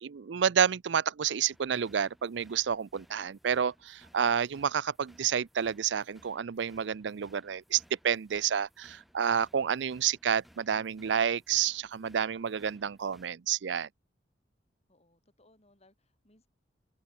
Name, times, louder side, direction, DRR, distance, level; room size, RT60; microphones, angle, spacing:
voice 1, 0.0-13.9, right 8 dB, 70° right, 0.5 m, -29 dB
sound 1, 1.5-13.3, equal, ahead, 3.3 m, -62 dB
voice 2, 12.5-12.9 14.9-16.5, left 2 dB, 35° left, 5.2 m, -66 dB
head